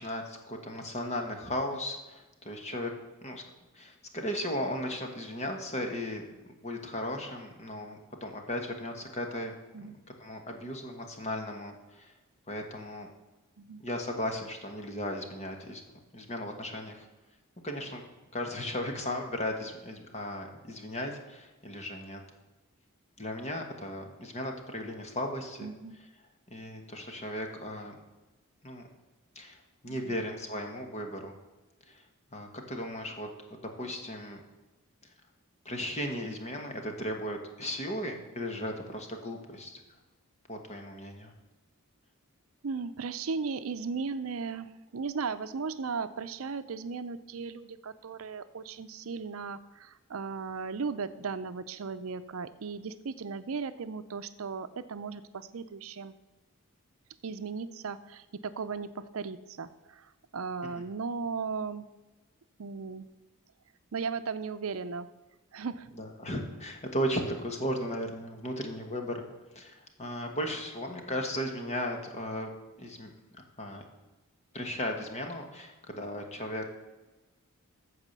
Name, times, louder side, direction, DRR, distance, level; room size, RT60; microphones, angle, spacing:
voice 1, 0.0-2.9 3.2-3.4 3.7-6.2 6.6-9.5 10.2-12.1 12.5-13.1 13.8-15.8 16.1-17.1 17.6-18.0 18.3-22.2 23.2-25.7 26.5-27.9 28.6-28.9 29.3-29.6 29.8-31.3 31.9-32.0 32.3-34.4 35.6-39.8 40.5-41.3 65.9-69.2 69.5-72.5 72.8-73.8 74.5-76.7, left 1 dB, 30° left, 3 dB, 1.5 m, -36 dB
voice 2, 25.6-26.0 29.9-30.2 42.6-56.1 57.2-61.9 62.6-63.1 63.9-65.1 65.5-65.9, right 5 dB, 70° right, 12 dB, 0.6 m, -36 dB
14.5 x 4.9 x 6.7 m, 1.2 s
head